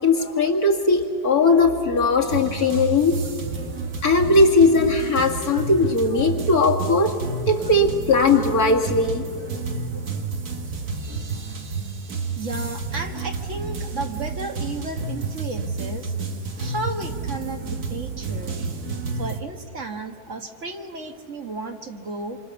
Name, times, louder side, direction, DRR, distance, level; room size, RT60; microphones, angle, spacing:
voice 1, 0.0-3.2 4.0-7.2 7.5-9.5, left 3 dB, 70° left, 0 dB, 2.5 m, -19 dB
sound 1, 2.2-19.4, right 4 dB, 70° right, 2.2 m, -30 dB
voice 2, 12.4-16.1 16.6-18.7 19.2-22.4, right 3 dB, 50° right, 4 dB, 1.8 m, -33 dB
27.5 x 25.0 x 7.0 m, 2.6 s
omnidirectional pair, 1.7 m